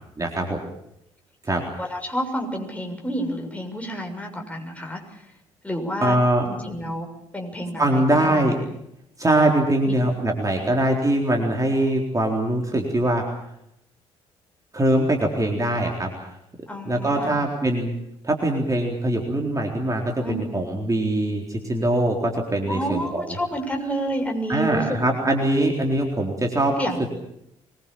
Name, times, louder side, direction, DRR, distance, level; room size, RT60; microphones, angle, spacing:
voice 1, 0.2-0.6 1.4-1.6 6.0-6.5 7.8-8.6 9.2-13.2 14.7-16.3 16.9-18.0 18.2-23.3 24.5-27.1, right 1 dB, 20° right, 1 dB, 4.0 m, -22 dB
voice 2, 1.8-5.3 5.6-6.2 6.5-7.1 7.3-8.5 9.8-10.0 10.6-10.7 11.3-11.7 16.7-17.5 20.2-20.7 22.6-25.1 26.8-27.1, equal, 10° left, 2 dB, 6.8 m, -30 dB
23.5 x 21.5 x 7.2 m, 0.79 s
figure-of-eight pair, 45°, 16 cm